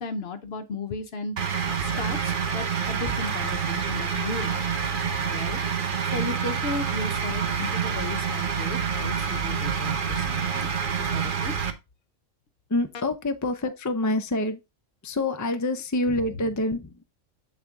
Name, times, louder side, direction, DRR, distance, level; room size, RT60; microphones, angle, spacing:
voice 1, 0.0-1.4 1.8-11.5 16.2-16.4, left 3 dB, 60° left, 0.9 m, -36 dB
sound 1, 1.4-11.7, right 6 dB, 45° right, 0.9 m, -27 dB
voice 2, 12.7-14.6 15.0-17.0, left 2 dB, 20° left, 0.6 m, -27 dB
7.6 x 4.3 x 3.6 m
omnidirectional pair, 1.3 m